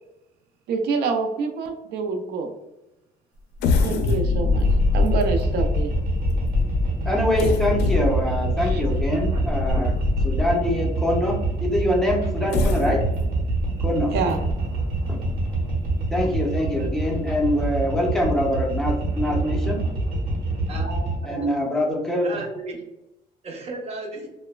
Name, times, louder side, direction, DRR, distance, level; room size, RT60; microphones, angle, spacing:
voice 1, 0.7-2.5 3.8-4.7 4.9-5.9 8.6-8.8 14.1-14.4, right 4 dB, 75° right, 4 dB, 0.4 m, -26 dB
sound 1, 3.6-10.7 11.3-11.4 12.3-15.8 16.3-16.4 16.8-17.0, left 3 dB, 75° left, 0.4 m, -25 dB
sound 2, 4.5-21.2, right 2 dB, 55° right, 1.0 m, -26 dB
voice 2, 7.1-9.9 10.2-13.0 13.8-14.1 15.1-15.2 16.1-19.8 21.2-22.3, left 1 dB, 5° left, -2 dB, 0.6 m, -24 dB
voice 3, 20.7-21.6 22.2-22.8 23.4-24.3, right 2 dB, 40° right, 1 dB, 0.7 m, -34 dB
3.0 x 2.0 x 2.2 m, 0.93 s
cardioid pair, 110°, 17 cm